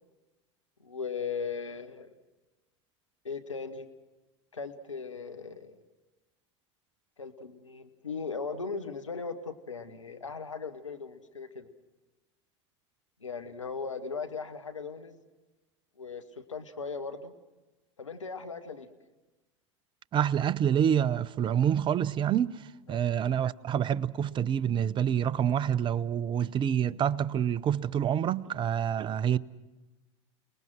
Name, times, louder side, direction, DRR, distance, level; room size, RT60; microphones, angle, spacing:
voice 1, 0.8-2.1 3.2-3.9 4.5-5.8 7.2-11.7 13.2-15.2 16.0-17.3 18.0-18.9 22.9-23.1, left 5 dB, 90° left, 1.5 m, -38 dB
voice 2, 20.1-29.4, right 9 dB, 30° right, 0.7 m, -27 dB
30.0 x 19.5 x 6.2 m
figure-of-eight pair, 80°, 16 cm